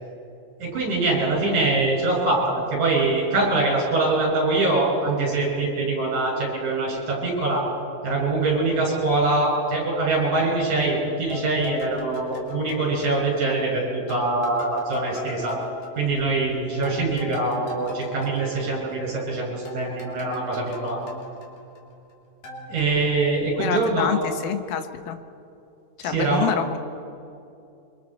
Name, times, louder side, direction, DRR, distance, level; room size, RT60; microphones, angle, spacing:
voice 1, 0.6-7.6 8.0-15.6 16.0-21.0 22.7-24.2 26.0-26.5, right 2 dB, 55° right, -3 dB, 7.7 m, -23 dB
sound 1, 11.3-13.7 14.1-19.3 19.7-22.1 22.4-22.8, left 2 dB, 65° left, 4.3 m, -38 dB
voice 2, 23.6-25.2 26.0-26.8, left 8 dB, 85° left, 7 dB, 2.9 m, -27 dB
28.5 x 25.5 x 4.4 m, 2.7 s
omnidirectional pair, 4.2 m